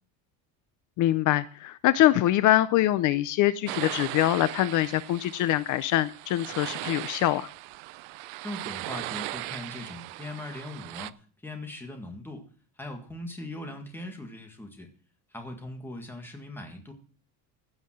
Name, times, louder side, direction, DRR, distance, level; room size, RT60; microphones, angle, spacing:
voice 1, 1.0-7.5, left 14 dB, 45° left, 14 dB, 0.5 m, -24 dB
sound 1, 3.7-11.1, right 20 dB, 85° right, 0.7 m, -38 dB
voice 2, 8.4-12.5 12.8-14.9 15.3-16.9, left 1 dB, 5° left, 3 dB, 1.8 m, -40 dB
16.0 x 5.8 x 7.5 m, 0.43 s
cardioid pair, 180°, 45 cm